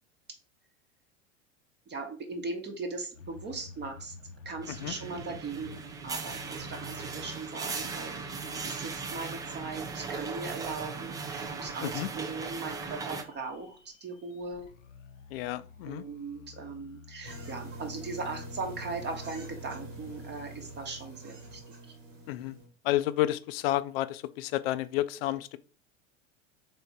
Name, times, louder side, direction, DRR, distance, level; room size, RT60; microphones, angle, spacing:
voice 1, 1.9-4.1 4.4-8.3 8.5-14.7 15.9-21.6, right 3 dB, 30° right, 0.9 m, -39 dB
sound 1, 3.1-21.6, left 5 dB, 80° left, 0.7 m, -51 dB
sound 2, 4.6-13.2, right 5 dB, 10° right, 0.3 m, -38 dB
voice 2, 15.3-16.0 22.3-22.6 22.8-25.6, left 15 dB, 50° left, 0.5 m, -30 dB
sound 3, 17.2-22.7, right 3 dB, 80° right, 1.4 m, -45 dB
3.5 x 3.4 x 4.1 m
figure-of-eight pair, 85°, 38 cm